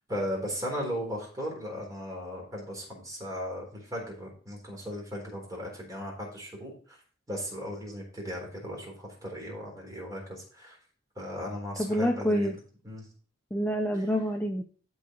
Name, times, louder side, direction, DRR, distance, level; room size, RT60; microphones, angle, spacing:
voice 1, 0.1-7.0 7.3-10.8 11.2-12.5 12.8-13.0 13.9-14.0, equal, 20° right, -1 dB, 3.9 m, -37 dB
voice 2, 11.8-12.5 13.5-14.6, equal, 10° left, 3 dB, 0.6 m, -27 dB
13.0 x 4.8 x 3.8 m, 0.41 s
head